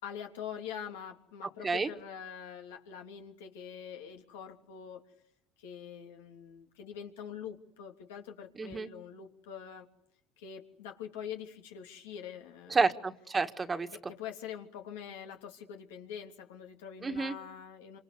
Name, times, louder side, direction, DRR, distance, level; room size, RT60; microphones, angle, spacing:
voice 1, 0.0-5.0 5.6-9.9 10.4-12.8 13.9-18.0, left 8 dB, 85° left, 3 dB, 3.2 m, -44 dB
voice 2, 8.6-8.9 12.7-13.9 17.0-17.4, right 4 dB, 25° right, 8 dB, 1.8 m, -30 dB
27.0 x 26.5 x 8.2 m, 0.73 s
supercardioid pair, 90°, 0 cm